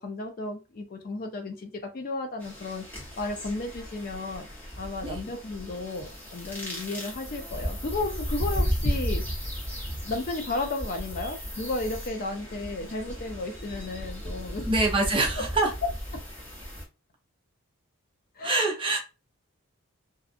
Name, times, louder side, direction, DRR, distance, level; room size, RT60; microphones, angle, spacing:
voice 1, 0.0-2.9 3.2-4.5 4.8-9.2 10.0-14.7 15.4-15.5 18.4-18.6, left 2 dB, 40° left, 0.4 m, -33 dB
sound 1, 2.4-16.8, equal, 10° left, 0.8 m, -34 dB
voice 2, 14.7-15.7 18.4-19.0, right 2 dB, 25° right, 0.6 m, -25 dB
2.6 x 2.3 x 2.4 m
head